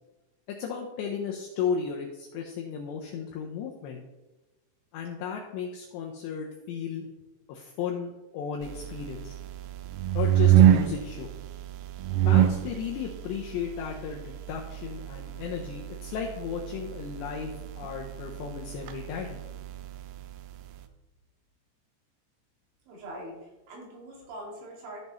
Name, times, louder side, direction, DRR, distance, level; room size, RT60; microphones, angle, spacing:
voice 1, 0.6-4.0 4.9-7.1 7.5-9.3 10.1-11.3 12.3-19.4, left 7 dB, 85° left, 0 dB, 2.5 m, -34 dB
sound 1, 8.6-20.8, right 11 dB, 85° right, 3.3 m, -27 dB
voice 2, 22.9-25.0, right 1 dB, 70° right, -3 dB, 4.5 m, -43 dB
14.5 x 5.4 x 3.1 m, 1.1 s
omnidirectional pair, 5.9 m